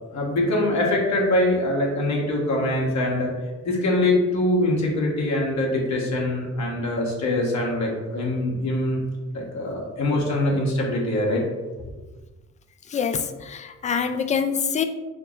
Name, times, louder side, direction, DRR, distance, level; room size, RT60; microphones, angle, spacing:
voice 1, 0.1-3.3 3.6-9.0 9.3-11.4, left 1 dB, 65° left, -2 dB, 1.3 m, -23 dB
voice 2, 12.9-14.8, left 6 dB, 25° left, 8 dB, 0.3 m, -25 dB
4.9 x 2.0 x 4.5 m, 1.2 s
cardioid pair, 90°, 30 cm